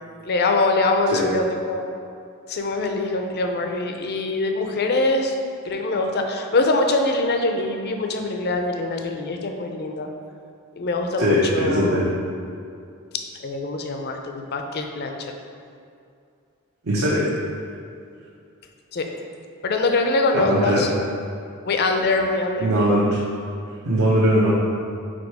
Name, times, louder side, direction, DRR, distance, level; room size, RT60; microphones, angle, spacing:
voice 1, 0.2-1.9 2.5-5.4 5.6-10.1 10.8-12.0 13.4-15.3 18.9-19.0 19.6-20.9 21.6-22.7, left 2 dB, 45° left, 4 dB, 0.5 m, -23 dB
voice 2, 11.2-12.1 16.8-17.3 20.3-20.9 22.6-23.2 23.8-24.5, equal, 65° right, -8 dB, 1.0 m, -20 dB
5.0 x 4.2 x 4.8 m, 2.5 s
head